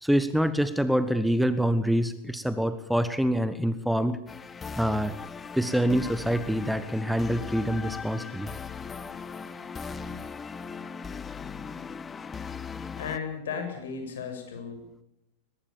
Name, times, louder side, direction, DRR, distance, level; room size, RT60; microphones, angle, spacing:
voice 1, 0.0-4.2 4.8-5.1 5.5-8.5, equal, ahead, 13 dB, 1.2 m, -26 dB
sound 1, 4.3-13.2, left 5 dB, 15° left, 1.1 m, -38 dB
voice 2, 13.0-15.0, left 6 dB, 60° left, 5 dB, 7.3 m, -35 dB
22.5 x 20.5 x 7.1 m, 0.84 s
figure-of-eight pair, 90°, 0 cm